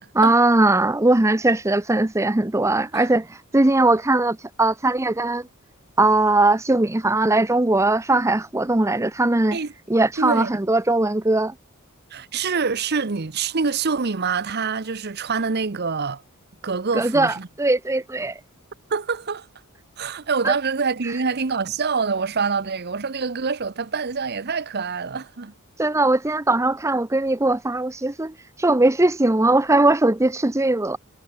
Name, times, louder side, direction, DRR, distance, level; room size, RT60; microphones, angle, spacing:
voice 1, 0.2-5.5 6.0-9.6 9.9-11.5 16.9-18.4 20.4-20.5 25.8-31.0, right 2 dB, 15° right, 0.6 m, -20 dB
voice 2, 10.2-10.5 12.1-16.2 16.6-17.5 18.9-19.5 20.0-25.5, right 5 dB, 50° right, 0.8 m, -25 dB
head